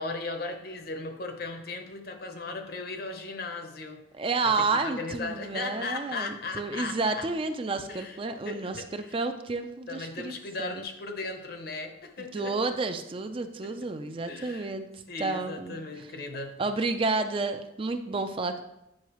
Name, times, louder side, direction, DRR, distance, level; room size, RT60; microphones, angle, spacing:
voice 1, 0.0-4.0 4.4-7.3 7.9-8.2 8.4-9.2 9.9-12.6 13.6-13.7 14.2-14.7 15.1-16.6, left 3 dB, 55° left, 5 dB, 0.9 m, -37 dB
voice 2, 4.2-10.8 12.3-15.8 16.6-18.6, right 3 dB, 30° right, 8 dB, 0.4 m, -30 dB
8.5 x 5.5 x 3.0 m, 0.85 s
head